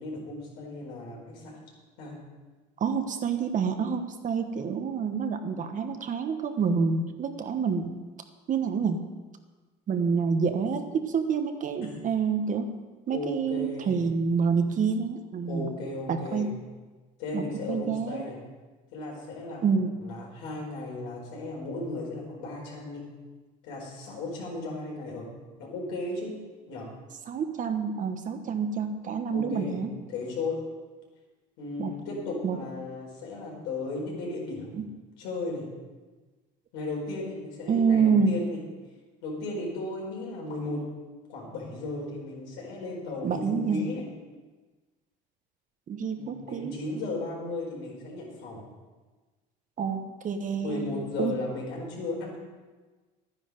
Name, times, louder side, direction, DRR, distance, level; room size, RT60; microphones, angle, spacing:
voice 1, 0.0-1.6 2.0-2.2 11.8-11.9 13.1-14.0 15.4-16.5 17.2-18.4 18.9-19.6 20.0-23.0 23.6-25.3 25.6-26.4 26.7-26.9 29.3-29.8 30.1-30.6 31.6-34.7 35.2-35.6 36.7-38.6 39.2-40.8 41.3-44.1 46.1-48.6 50.6-52.4, left 2 dB, 80° left, -2 dB, 4.5 m, -35 dB
voice 2, 2.8-7.9 8.5-9.0 9.9-12.7 13.1-15.7 16.1-16.5 17.3-17.4 17.7-18.3 19.6-19.9 27.3-29.9 31.8-31.9 32.4-32.6 34.8-34.9 37.7-38.4 43.2-43.8 45.9-46.8 49.8-50.9 51.2-51.3, right 5 dB, 40° right, 7 dB, 1.2 m, -27 dB
11.5 x 9.9 x 5.2 m, 1.3 s
cardioid pair, 110°, 20 cm